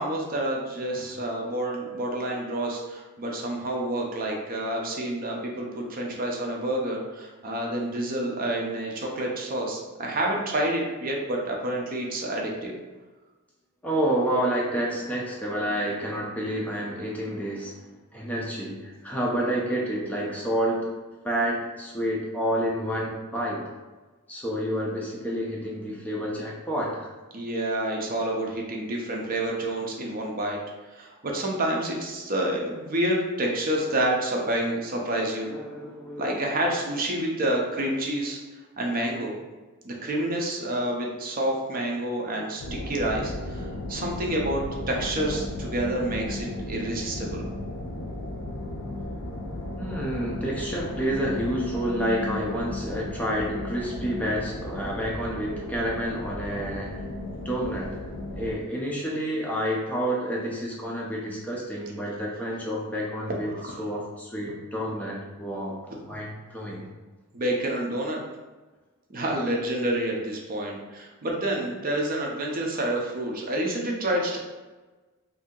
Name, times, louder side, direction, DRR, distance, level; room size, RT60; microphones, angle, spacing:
voice 1, 0.0-12.7 27.3-30.6 30.9-35.5 36.2-38.4 38.8-39.4 39.8-42.6 42.9-47.5 63.5-63.8 67.3-68.2 69.1-74.4, right 1 dB, 40° right, 0 dB, 0.5 m, -28 dB
voice 2, 0.9-1.2 5.8-6.2 13.8-20.9 21.2-23.6 24.3-27.1 35.2-36.8 37.8-38.3 40.6-40.9 49.8-57.1 57.4-58.0 58.4-65.8 66.0-66.9, equal, 5° left, -4 dB, 0.5 m, -29 dB
sound 1, 42.6-58.6, left 1 dB, 75° left, 0.5 m, -35 dB
2.7 x 2.7 x 3.7 m, 1.2 s
head